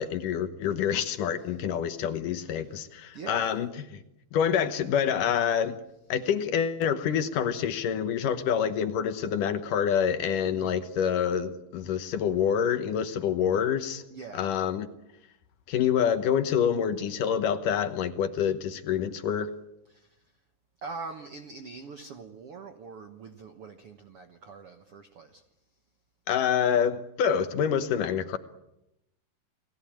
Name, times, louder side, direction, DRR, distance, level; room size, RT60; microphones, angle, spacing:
voice 1, 0.0-4.0 4.3-5.8 6.1-14.0 14.3-14.9 15.7-19.5 26.3-28.4, left 8 dB, 65° left, 10 dB, 2.5 m, -27 dB
voice 2, 2.5-2.8 3.1-3.5 10.5-10.8 14.1-14.5 19.9-20.2 20.8-25.4, right 4 dB, 65° right, 7 dB, 1.4 m, -43 dB
30.0 x 19.0 x 8.8 m, 0.87 s
omnidirectional pair, 4.4 m